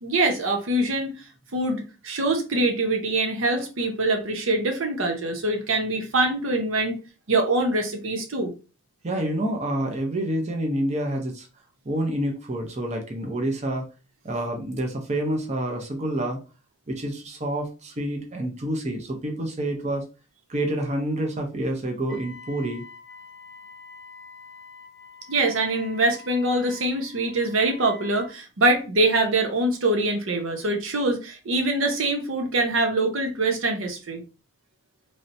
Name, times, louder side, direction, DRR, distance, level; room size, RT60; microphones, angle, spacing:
voice 1, 0.0-1.1 1.5-7.0 7.3-8.5 25.3-34.2, right 2 dB, 85° right, 0.7 m, -24 dB
voice 2, 9.0-11.5 11.9-13.9 14.2-16.4 16.9-20.0 20.5-22.8, right 1 dB, 35° right, 0.7 m, -28 dB
Wind instrument woodwind instrument, 22.1-28.3, left 4 dB, 5° left, 1.2 m, -46 dB
3.2 x 2.7 x 2.6 m
head